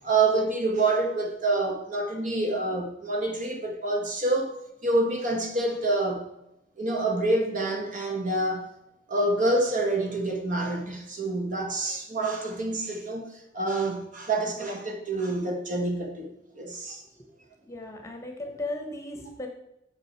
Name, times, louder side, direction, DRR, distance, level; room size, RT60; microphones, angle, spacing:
voice 1, 0.0-6.3 6.8-8.7 9.1-17.0, right 2 dB, 45° right, 2 dB, 1.6 m, -27 dB
voice 2, 17.7-19.5, left 2 dB, 15° left, 3 dB, 1.1 m, -36 dB
8.6 x 6.4 x 4.6 m, 0.82 s
head